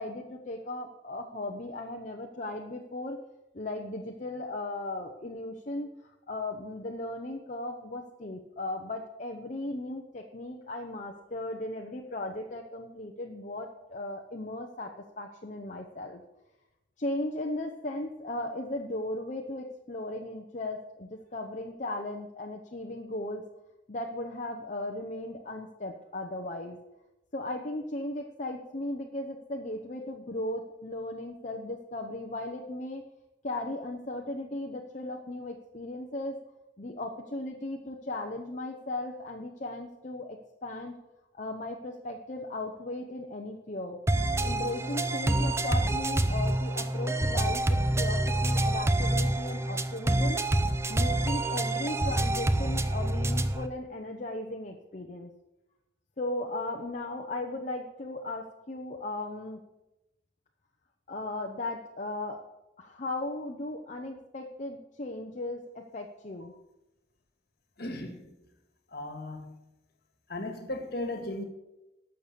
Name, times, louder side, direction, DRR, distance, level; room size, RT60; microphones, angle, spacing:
voice 1, 0.0-3.2 3.5-16.2 17.0-23.4 23.9-26.8 27.3-33.0 33.4-36.4 36.8-40.9 41.3-44.0 44.4-50.4 50.9-55.3 56.2-59.6 61.1-62.4 62.8-66.5, left 2 dB, 40° left, 0.9 m, -37 dB
sound 1, 44.1-53.7, right 1 dB, 15° right, 0.6 m, -27 dB
voice 2, 67.8-68.3 68.9-69.6 70.3-71.4, left 1 dB, 60° left, 1.9 m, -36 dB
12.0 x 6.7 x 6.9 m
head